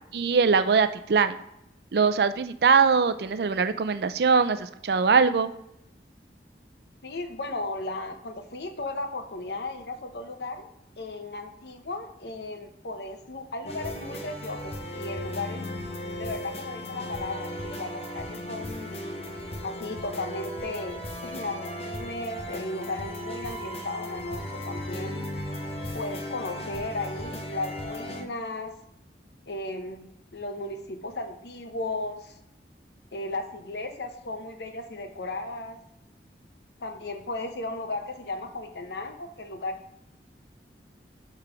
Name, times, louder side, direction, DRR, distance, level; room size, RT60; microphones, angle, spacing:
voice 1, 0.1-1.4 1.9-5.5, right 5 dB, 70° right, 12 dB, 0.4 m, -22 dB
voice 2, 7.0-10.7 11.0-15.6 16.2-18.9 19.6-25.2 25.9-28.8 29.5-32.4 33.1-35.8 36.8-39.8, left 2 dB, 75° left, 6 dB, 0.8 m, -35 dB
sound 1, 13.6-28.2, left 1 dB, 35° left, 0.7 m, -36 dB
6.8 x 3.4 x 5.8 m, 0.81 s
head